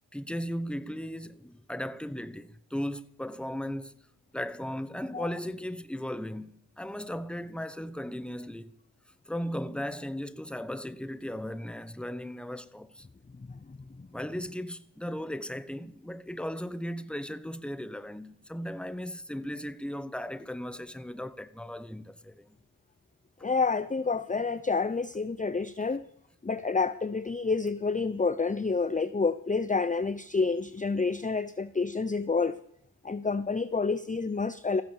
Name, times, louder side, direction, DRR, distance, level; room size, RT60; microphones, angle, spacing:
voice 1, 0.1-4.0 4.3-8.7 9.3-13.1 14.1-22.5, equal, ahead, 1.0 m, -36 dB
voice 2, 13.4-14.1 23.4-26.0 26.4-32.6 33.0-34.8, left 4 dB, 20° left, 0.6 m, -29 dB
15.0 x 13.0 x 7.2 m
cardioid pair, 60°, 40 cm